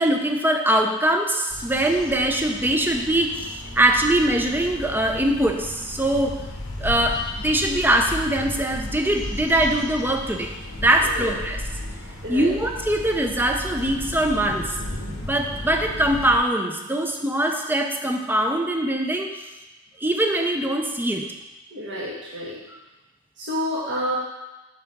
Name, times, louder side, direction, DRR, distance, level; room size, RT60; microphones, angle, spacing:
voice 1, 0.0-6.4 6.8-10.5 10.8-11.6 12.3-14.7 15.2-19.3 20.0-21.2, right 1 dB, 10° right, 3 dB, 0.6 m, -22 dB
sound 1, 1.5-16.4, left 1 dB, 80° left, 1.1 m, -35 dB
voice 2, 12.2-12.5 21.7-22.6 23.4-24.2, equal, 60° right, -7 dB, 1.6 m, -29 dB
6.0 x 5.0 x 6.0 m, 1.1 s
head